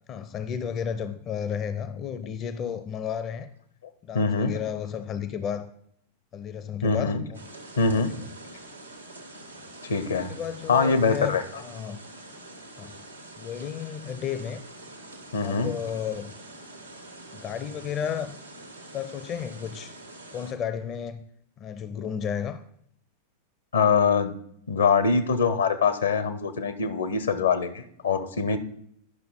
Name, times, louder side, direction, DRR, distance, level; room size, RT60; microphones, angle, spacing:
voice 1, 0.1-3.5 4.0-5.7 6.3-7.4 8.0-8.3 10.3-12.0 12.8-13.0 13.4-14.6 15.4-16.3 17.3-18.4 18.9-19.9 20.3-21.2 21.6-22.6, left 8 dB, 30° left, 0.5 m, -33 dB
voice 2, 4.1-4.5 6.8-7.2 7.8-8.1 9.8-10.3 10.7-11.6 15.3-15.7 23.7-24.3 24.7-28.6, left 5 dB, 70° left, 0.7 m, -23 dB
sound 1, 7.3-20.5, right 2 dB, 85° right, 1.1 m, -45 dB
10.5 x 5.7 x 3.7 m
figure-of-eight pair, 90°, 0 cm